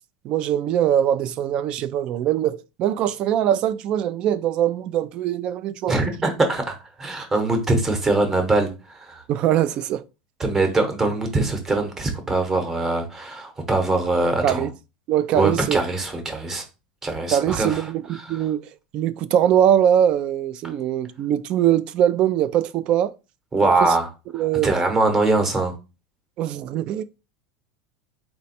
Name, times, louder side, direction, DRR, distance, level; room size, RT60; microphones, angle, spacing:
voice 1, 0.2-6.0 9.3-10.0 14.4-14.7 15.1-15.8 17.3-18.7 18.9-23.1 23.8-24.0 24.3-24.7 26.4-27.0, right 10 dB, 40° right, 0.3 m, -22 dB
voice 2, 5.9-9.2 10.4-14.7 15.3-16.6 17.0-17.8 18.2-18.4 23.5-24.1 24.6-25.7, right 2 dB, 15° right, 0.9 m, -22 dB
4.0 x 2.2 x 4.1 m
supercardioid pair, 145°, 2 cm